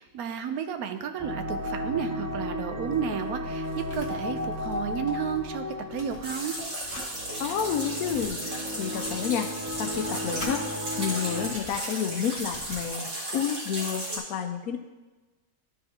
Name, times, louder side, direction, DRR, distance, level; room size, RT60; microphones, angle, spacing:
voice 1, 0.0-6.6, right 8 dB, 85° right, 8 dB, 1.1 m, -32 dB
sound 1, 1.2-11.5, left 1 dB, 20° right, 0.6 m, -35 dB
sound 2, 2.7-5.4 5.7-7.1 7.7-8.3 8.9-10.6 11.3-13.0, left 1 dB, 20° left, 1.6 m, -45 dB
sound 3, 6.2-14.2, right 1 dB, 65° right, 2.5 m, -35 dB
voice 2, 7.4-9.5 9.8-10.6 11.0-14.8, left 8 dB, 90° left, 6 dB, 1.1 m, -30 dB
12.0 x 4.7 x 2.8 m, 1.2 s
omnidirectional pair, 1.5 m